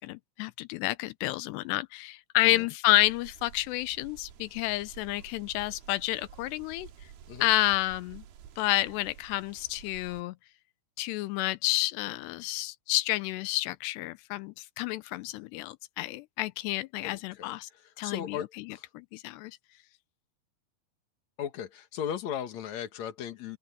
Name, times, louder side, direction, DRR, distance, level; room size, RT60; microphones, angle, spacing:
voice 1, 0.0-6.9 7.4-8.2 8.6-10.3 11.0-17.7 18.0-18.4 18.9-19.6, left 18 dB, 85° left, 2.9 m, -30 dB
sound 1, 2.9-10.2, right 9 dB, 70° right, 3.3 m, -51 dB
voice 2, 17.0-18.9 21.4-23.6, left 9 dB, 55° left, 2.4 m, -37 dB
open air
omnidirectional pair, 4.8 m